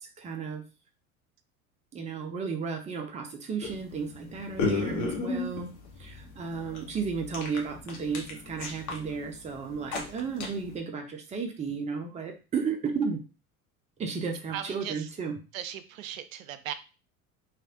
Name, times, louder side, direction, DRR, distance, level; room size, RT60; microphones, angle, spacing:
voice 1, 0.0-0.6 1.9-5.7 6.0-13.2 14.0-15.4, right 5 dB, 15° right, 4 dB, 0.6 m, -33 dB
sound 1, 3.6-10.8, left 3 dB, 40° left, 1.1 m, -35 dB
voice 2, 14.5-15.1 15.5-16.7, right 10 dB, 65° right, 12 dB, 0.5 m, -38 dB
3.2 x 2.4 x 2.7 m, 0.32 s
figure-of-eight pair, 70°, 43 cm